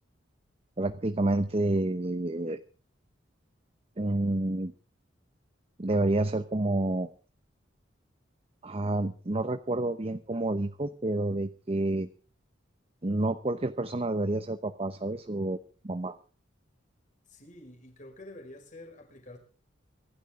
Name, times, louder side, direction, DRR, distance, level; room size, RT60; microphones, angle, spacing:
voice 1, 0.8-2.6 4.0-4.7 5.8-7.1 8.6-12.1 13.0-15.6 15.8-16.2, right 2 dB, 30° right, 0.9 m, -29 dB
voice 2, 17.3-19.4, left 1 dB, 45° left, 5.7 m, -48 dB
25.0 x 12.5 x 3.7 m
head